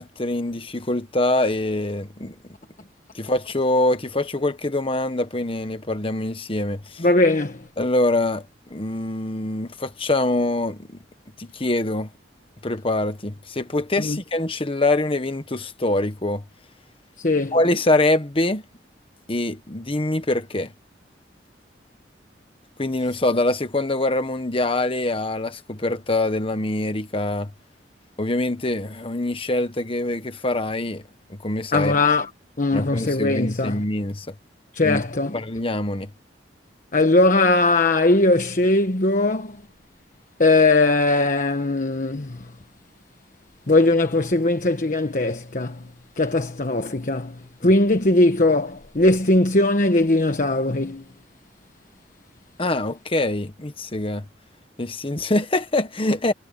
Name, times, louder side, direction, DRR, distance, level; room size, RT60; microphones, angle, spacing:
voice 1, 0.0-2.3 3.1-7.0 7.8-11.0 11.4-12.1 12.6-16.4 17.5-18.6 19.3-20.7 22.8-27.5 28.2-31.0 31.3-32.0 32.7-34.3 34.8-35.0 35.3-36.1 52.6-54.3 54.8-56.3, left 2 dB, 30° left, 1.4 m, -24 dB
voice 2, 7.0-7.6 14.0-14.2 17.2-17.6 31.7-32.3 32.6-33.8 34.7-35.4 36.9-39.6 40.4-42.5 43.7-45.9 46.2-51.0, left 2 dB, 45° left, 1.2 m, -20 dB
head